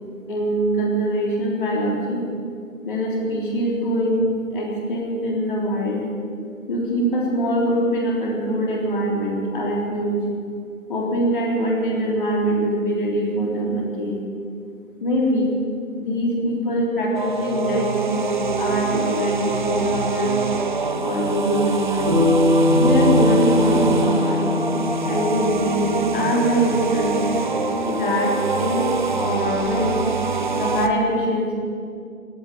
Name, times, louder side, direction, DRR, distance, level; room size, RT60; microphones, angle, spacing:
voice 1, 0.3-2.2 2.9-6.1 6.7-10.2 10.9-14.2 15.0-15.5 16.0-20.4 21.0-22.1 22.7-24.5 25.0-27.3 27.8-28.8 29.2-30.0 30.5-31.5, equal, 40° left, -2 dB, 3.8 m, -23 dB
sound 1, 17.1-30.9, right 4 dB, 35° right, 0.7 m, -24 dB
Bass guitar, 22.1-26.5, left 2 dB, 20° left, 3.3 m, -21 dB
16.5 x 9.5 x 9.0 m, 2.4 s
figure-of-eight pair, 150°, 40 cm